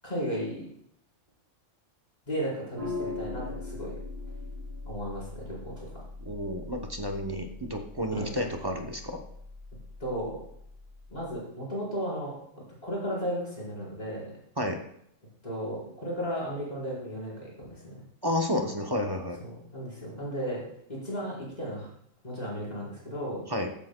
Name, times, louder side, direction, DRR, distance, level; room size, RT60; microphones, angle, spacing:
voice 1, 0.0-0.6 2.3-3.9 4.8-6.0 8.1-8.3 10.0-10.4 11.1-12.3 12.8-14.3 15.4-18.0 19.4-20.6 20.9-21.9 22.2-23.4, equal, 30° left, -6 dB, 4.4 m, -34 dB
sound 1, 2.8-11.3, left 3 dB, 50° right, 3.7 m, -41 dB
voice 2, 6.2-9.2 14.6-14.8 18.2-19.4 23.5-23.7, left 1 dB, 25° right, 3 dB, 0.6 m, -31 dB
14.5 x 8.5 x 2.2 m, 0.70 s
omnidirectional pair, 1.3 m